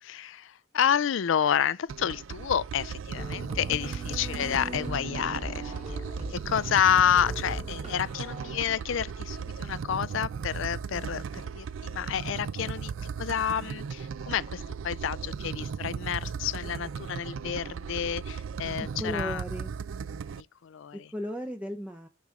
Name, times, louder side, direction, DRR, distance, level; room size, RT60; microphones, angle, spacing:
voice 1, 0.0-11.2 11.5-12.9 13.2-19.4 20.4-21.1, left 9 dB, 65° left, 0.4 m, -29 dB
sound 1, 1.9-20.4, right 6 dB, 70° right, 0.4 m, -37 dB
sound 2, 3.2-8.5, right 2 dB, 35° right, 1.9 m, -40 dB
voice 2, 19.0-19.7 20.9-22.1, equal, 5° right, 0.6 m, -35 dB
6.0 x 5.5 x 3.7 m
head